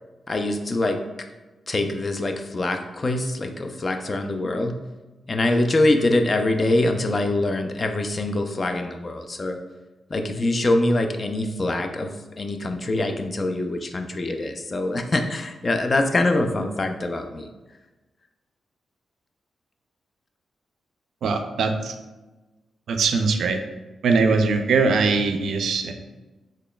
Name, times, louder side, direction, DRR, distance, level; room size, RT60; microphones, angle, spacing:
voice 1, 0.3-1.0 1.7-4.7 5.3-9.6 10.1-17.5, left 2 dB, 35° left, 6 dB, 0.4 m, -24 dB
voice 2, 21.2-21.9 22.9-23.6 24.0-25.9, right 4 dB, 80° right, 6 dB, 0.3 m, -21 dB
4.0 x 3.1 x 2.2 m, 1.1 s
cardioid pair, 85°, 0 cm